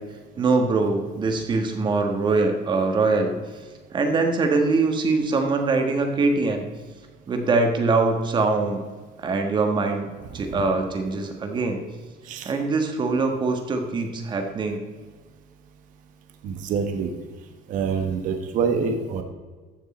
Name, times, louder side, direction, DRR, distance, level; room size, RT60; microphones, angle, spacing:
voice 1, 0.4-3.3 3.9-6.6 7.3-8.8 9.2-11.8 12.4-14.8, right 3 dB, 25° right, 4 dB, 1.4 m, -23 dB
voice 2, 16.4-17.1 17.7-19.2, right 6 dB, 50° right, 6 dB, 1.2 m, -26 dB
14.5 x 6.5 x 4.3 m, 1.4 s
cardioid pair, 160°, 17 cm